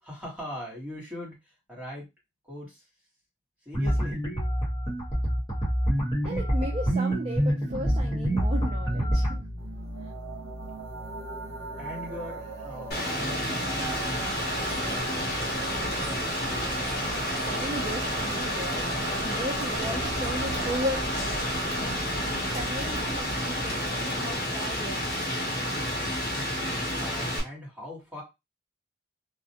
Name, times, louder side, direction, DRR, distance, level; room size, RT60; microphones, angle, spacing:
voice 1, 0.0-2.1 2.4-2.9 3.6-4.2 11.8-14.1 14.9-15.4 15.8-16.3 27.0-28.2, left 1 dB, 10° right, -4 dB, 1.1 m, -41 dB
sound 1, 3.7-9.4, equal, 20° left, 1.0 m, -26 dB
voice 2, 6.2-9.5 10.0-10.1 17.5-18.8 19.1-21.8 22.5-25.4, equal, 35° right, 0 dB, 0.3 m, -36 dB
sound 2, 7.7-26.2, right 2 dB, 80° right, 0.7 m, -38 dB
Rain, 12.9-27.4, equal, 55° left, 0.9 m, -30 dB
2.3 x 2.0 x 2.7 m, 0.23 s
head